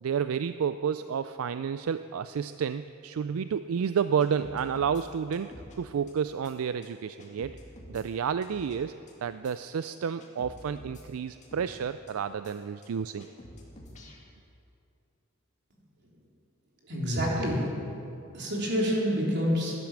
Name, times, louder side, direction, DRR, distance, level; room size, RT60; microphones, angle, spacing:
voice 1, 0.0-5.5 5.8-7.6 7.9-8.9 9.2-13.3, right 7 dB, 80° right, 12 dB, 0.4 m, -30 dB
sound 1, 4.2-5.0 5.3-5.8 6.1-6.2 6.4-6.5 6.8-6.9 7.2-8.0 8.4-8.8 9.1-9.2 9.4-9.5 9.8-9.9 10.2-11.0 11.4-11.8 12.1-12.2 12.4-12.5 12.8-12.9 13.2-14.2, left 1 dB, 35° left, 2.4 m, -48 dB
voice 2, 16.9-17.7 18.3-19.7, equal, 55° right, -3 dB, 3.4 m, -27 dB
15.5 x 11.0 x 7.3 m, 2.7 s
head